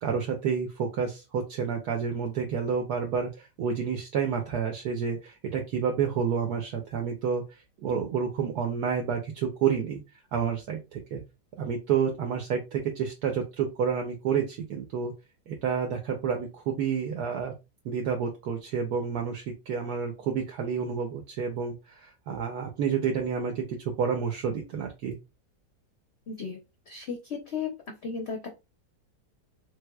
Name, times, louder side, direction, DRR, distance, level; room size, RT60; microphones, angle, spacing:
voice 1, 0.0-7.4 7.8-10.0 10.3-11.2 11.6-15.1 15.5-17.5 17.8-25.2, right 6 dB, 70° right, 3 dB, 1.1 m, -29 dB
voice 2, 26.3-26.6 26.9-27.7 28.0-28.5, left 6 dB, 60° left, 2 dB, 0.7 m, -34 dB
3.3 x 3.3 x 2.2 m, 0.26 s
omnidirectional pair, 1.8 m